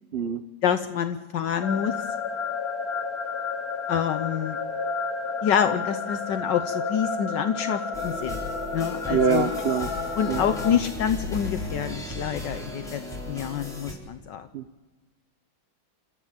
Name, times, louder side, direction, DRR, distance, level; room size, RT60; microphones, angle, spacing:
voice 1, 0.1-0.4 9.1-9.9 10.3-10.4 14.5-14.6, right 7 dB, 80° right, 9 dB, 0.5 m, -24 dB
voice 2, 0.6-1.9 3.9-4.6 5.4-8.4 8.7-9.5 10.2-13.0 13.3-14.5, left 8 dB, 70° left, 9 dB, 1.4 m, -27 dB
sound 1, 1.6-10.8, left 4 dB, 50° left, 1.7 m, -31 dB
sound 2, 7.9-13.9, left 1 dB, ahead, 4.3 m, -36 dB
29.5 x 13.0 x 7.3 m, 1.3 s
omnidirectional pair, 2.1 m